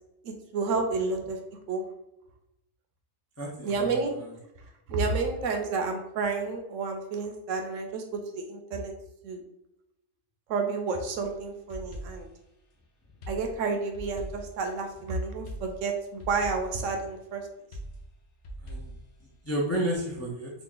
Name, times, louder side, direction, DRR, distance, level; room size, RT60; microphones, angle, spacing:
voice 1, 0.2-1.4 1.7-1.8 3.6-4.1 4.9-8.9 9.2-9.4 10.5-12.3 13.3-17.5, right 4 dB, 70° right, 4 dB, 0.9 m, -30 dB
voice 2, 3.4-4.3 18.6-18.9 19.2-20.5, right 1 dB, 25° left, -4 dB, 0.3 m, -32 dB
sound 1, 11.2-12.4 13.2-15.0 15.5-16.9 17.7-19.5, right 1 dB, 55° left, 0.8 m, -42 dB
2.9 x 2.5 x 3.7 m, 0.86 s
omnidirectional pair, 1.4 m